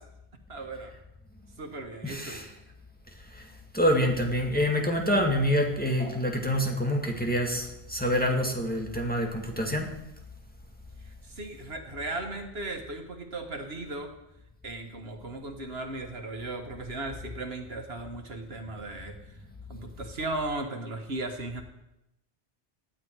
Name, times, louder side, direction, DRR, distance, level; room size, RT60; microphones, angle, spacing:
voice 1, 0.5-0.9 1.6-2.4 11.2-14.1 14.6-19.4 19.7-21.6, right 2 dB, 75° right, 5 dB, 1.8 m, -36 dB
voice 2, 2.0-2.5 3.3-3.5 3.7-9.9, equal, 10° left, 1 dB, 1.9 m, -26 dB
18.0 x 11.5 x 4.6 m, 0.87 s
omnidirectional pair, 1.1 m